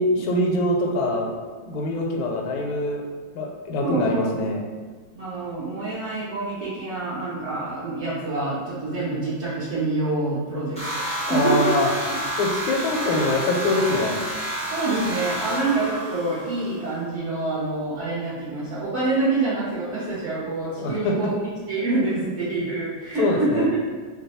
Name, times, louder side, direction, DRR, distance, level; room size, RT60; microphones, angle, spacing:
voice 1, 0.0-1.3 1.6-3.0 3.3-4.6 11.3-11.9 12.4-14.2 20.8-21.3 23.2-23.7, left 2 dB, 80° left, 0 dB, 1.4 m, -24 dB
voice 2, 3.8-4.3 5.1-10.8 11.1-12.2 14.7-21.3 21.7-23.7, right 3 dB, 60° right, -11 dB, 0.7 m, -26 dB
sound 1, 10.8-16.9, right 1 dB, 5° left, 0.6 m, -29 dB
3.2 x 2.1 x 4.1 m, 1.5 s
omnidirectional pair, 2.2 m